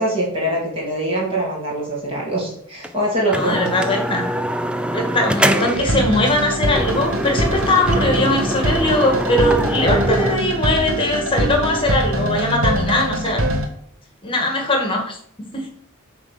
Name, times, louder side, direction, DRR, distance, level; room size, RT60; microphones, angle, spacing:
voice 1, 0.0-3.7, right 1 dB, 25° right, -5 dB, 2.8 m, -23 dB
sound 1, 2.8-2.9 3.3-5.9 6.3-6.4 6.8-10.4, equal, 5° right, 0.4 m, -24 dB
voice 2, 3.3-4.3 4.9-13.4 14.2-15.7, left 1 dB, 25° left, 3 dB, 1.7 m, -20 dB
sound 2, 5.4-13.7, right 1 dB, 65° right, 1.5 m, -23 dB
8.3 x 3.8 x 6.6 m, 0.67 s
head